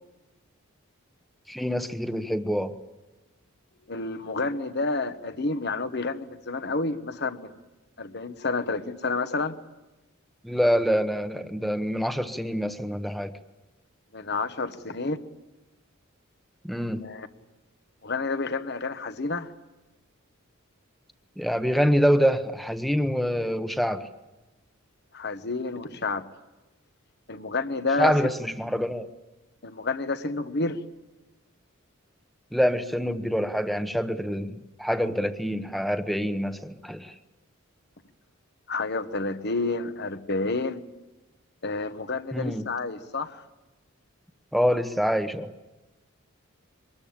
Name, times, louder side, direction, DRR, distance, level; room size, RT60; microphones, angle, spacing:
voice 1, 1.5-2.7 10.4-13.3 16.6-17.0 21.4-24.1 28.0-29.1 32.5-37.1 42.3-42.7 44.5-45.5, equal, ahead, 9 dB, 1.0 m, -26 dB
voice 2, 3.9-7.5 8.0-9.6 14.1-15.2 17.0-17.3 18.0-19.5 25.1-26.2 27.3-28.1 29.6-30.8 38.7-40.8 41.6-43.4, left 3 dB, 50° left, 11 dB, 1.3 m, -29 dB
24.5 x 20.5 x 8.8 m, 1.1 s
head